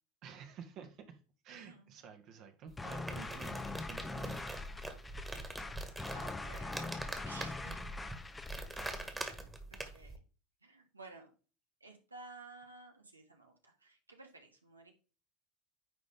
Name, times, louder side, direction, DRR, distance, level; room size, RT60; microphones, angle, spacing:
voice 1, 0.2-1.2 1.4-4.5 4.8-5.1, right 6 dB, 50° right, 1.5 m, -52 dB
voice 2, 1.5-1.9 6.1-7.8 8.7-9.0 9.7-10.2 10.6-11.3 11.8-14.9, right 3 dB, 90° right, 1.5 m, -55 dB
sound 1, 2.7-10.2, right 2 dB, 15° right, 1.7 m, -44 dB
sound 2, 2.8-9.1, left 3 dB, 15° left, 0.8 m, -43 dB
9.7 x 4.0 x 3.6 m
figure-of-eight pair, 70°, 0 cm